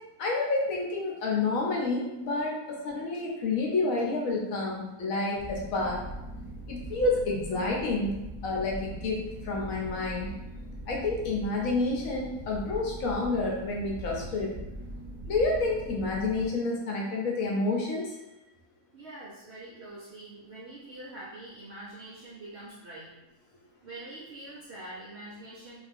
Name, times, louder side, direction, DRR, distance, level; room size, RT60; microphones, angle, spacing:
voice 1, 0.2-6.0 6.7-8.1 8.4-10.3 10.9-14.5 15.3-18.2, left 3 dB, 70° left, -2 dB, 0.9 m, -29 dB
sound 1, 5.4-16.5, right 1 dB, 20° left, 0.9 m, -41 dB
voice 2, 18.9-23.1 23.8-25.8, right 1 dB, 70° right, -7 dB, 0.6 m, -44 dB
2.5 x 2.3 x 3.4 m, 0.96 s
omnidirectional pair, 1.6 m